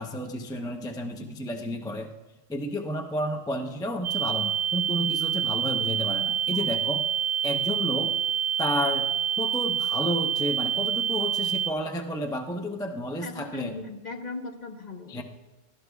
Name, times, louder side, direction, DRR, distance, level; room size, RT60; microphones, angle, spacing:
voice 1, 0.0-2.1 2.5-7.0 7.4-8.2 8.6-9.1 9.4-13.7 15.1-15.2, left 1 dB, 5° left, 4 dB, 0.6 m, -31 dB
sound 1, 4.0-11.7, right 9 dB, 60° right, 0.9 m, -27 dB
voice 2, 13.2-15.2, left 3 dB, 35° left, 3 dB, 1.0 m, -38 dB
19.5 x 13.5 x 2.3 m, 1.2 s
omnidirectional pair, 1.3 m